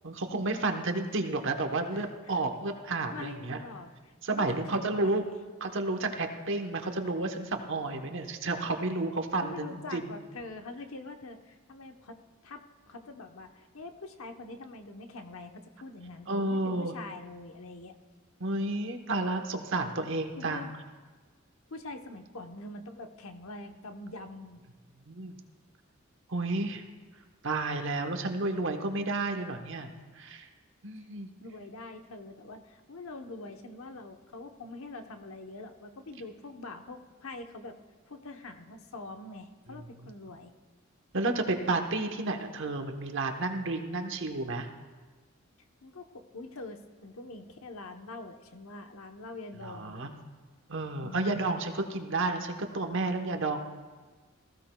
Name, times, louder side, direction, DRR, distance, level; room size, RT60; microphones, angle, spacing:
voice 1, 0.0-3.6 4.2-5.2 5.6-10.1 16.3-16.9 18.4-20.7 25.0-25.3 26.3-26.8 27.4-30.5 30.8-31.3 40.0-40.1 41.1-44.7 49.6-50.1 50.7-53.6, right 2 dB, 65° right, 5 dB, 1.0 m, -31 dB
voice 2, 1.9-2.4 3.0-5.4 9.4-12.2 12.4-17.9 20.4-20.7 21.7-24.6 31.4-37.8 38.1-40.5 45.8-50.0 51.0-51.4, left 2 dB, 90° left, 5 dB, 1.0 m, -44 dB
19.0 x 15.5 x 2.3 m, 1.4 s
head